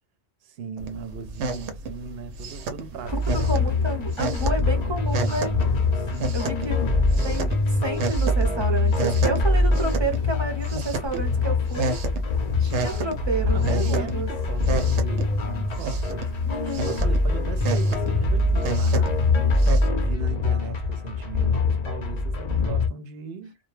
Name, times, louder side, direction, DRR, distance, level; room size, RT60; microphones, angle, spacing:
voice 1, 0.4-3.8 4.7-7.4 13.5-16.3 16.8-19.3 19.8-23.6, right 6 dB, 65° right, 0.8 m, -38 dB
sound 1, 0.8-19.9, right 3 dB, 90° right, 0.9 m, -32 dB
sound 2, 3.0-22.9, left 3 dB, 45° left, 0.6 m, -24 dB
voice 2, 3.3-5.5 6.3-6.9 7.2-7.5 7.8-12.0 12.6-14.3 16.5-17.0, right 2 dB, 30° right, 0.6 m, -30 dB
2.2 x 2.1 x 3.1 m
omnidirectional pair, 1.2 m